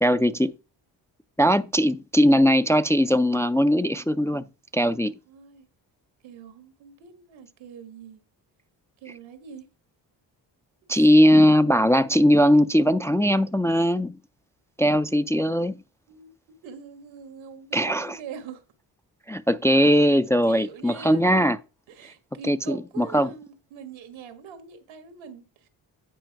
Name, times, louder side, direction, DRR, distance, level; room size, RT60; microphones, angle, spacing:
voice 1, 0.0-0.5 1.4-4.4 4.7-5.1 10.9-14.2 14.8-15.8 17.7-18.2 19.3-21.6 22.5-23.3, equal, 5° left, 0.3 m, -20 dB
voice 2, 5.2-5.7 6.2-8.2 9.0-9.7 10.9-11.1 16.1-16.3 16.6-18.6 20.4-21.2 21.9-25.7, right 6 dB, 90° right, 1.5 m, -43 dB
9.2 x 4.4 x 4.6 m
supercardioid pair, 60°, 45 cm